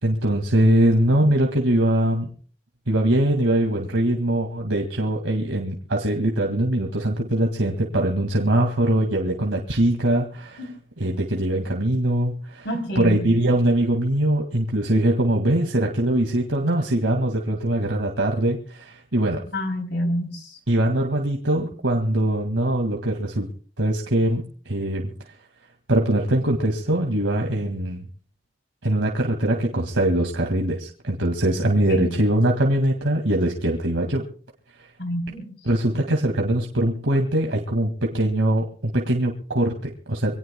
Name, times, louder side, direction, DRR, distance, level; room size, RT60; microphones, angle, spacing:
voice 1, 0.0-2.3 2.9-10.6 11.0-12.7 13.0-19.5 20.7-23.5 23.8-25.1 25.9-28.1 28.8-34.2 35.6-40.4, right 1 dB, 90° right, 1 dB, 2.1 m, -22 dB
voice 2, 12.6-13.3 19.5-20.6 31.9-32.1 35.0-35.5, equal, 65° left, 4 dB, 3.5 m, -27 dB
26.0 x 18.5 x 2.3 m, 0.44 s
head